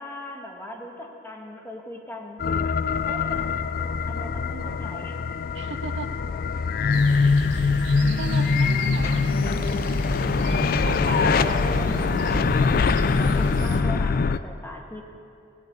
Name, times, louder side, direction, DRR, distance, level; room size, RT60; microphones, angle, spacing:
voice 1, 0.0-2.7 3.0-3.6 4.1-5.2 10.8-12.8 13.2-15.0, left 1 dB, 10° left, 0 dB, 1.5 m, -39 dB
sound 1, 2.4-14.4, left 5 dB, 50° left, 0.4 m, -23 dB
voice 2, 4.4-5.0 5.5-6.2 7.1-7.4 8.2-9.2 10.2-10.4 10.8-12.6, right 4 dB, 75° right, 9 dB, 0.7 m, -38 dB
sound 2, 6.9-13.8, right 1 dB, 90° right, 1.5 m, -31 dB
16.5 x 8.4 x 7.9 m, 2.6 s
head